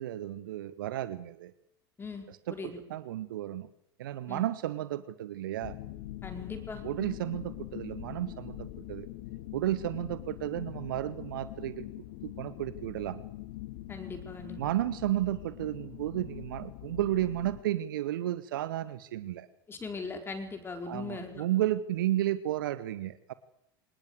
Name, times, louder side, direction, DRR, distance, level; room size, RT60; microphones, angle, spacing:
voice 1, 0.0-1.5 2.5-2.6 2.9-3.7 4.0-5.8 6.8-9.1 9.5-11.8 12.2-13.2 14.6-19.5 20.9-23.3, right 13 dB, 60° right, 15 dB, 1.1 m, -33 dB
voice 2, 2.0-2.8 4.3-4.4 6.2-6.8 13.9-14.7 19.7-21.4, left 4 dB, 20° left, 5 dB, 4.6 m, -40 dB
sound 1, 5.6-17.6, left 16 dB, 55° left, 1.9 m, -43 dB
25.5 x 19.5 x 8.1 m, 0.81 s
figure-of-eight pair, 80°, 13 cm